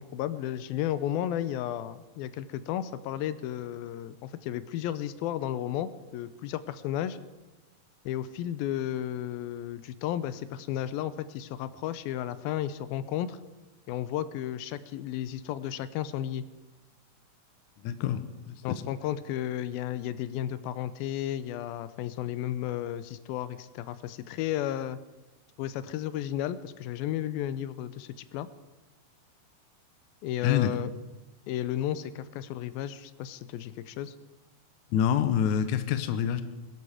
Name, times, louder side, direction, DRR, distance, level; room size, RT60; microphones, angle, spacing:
voice 1, 0.0-7.2 8.1-13.4 13.9-16.4 18.6-25.0 25.6-28.5 30.2-30.9 31.5-34.1, left 11 dB, 85° left, 14 dB, 2.5 m, -33 dB
voice 2, 17.8-18.6 30.4-30.7 34.9-36.4, left 9 dB, 70° left, 11 dB, 2.0 m, -26 dB
21.5 x 12.5 x 5.0 m, 1.1 s
omnidirectional pair, 4.1 m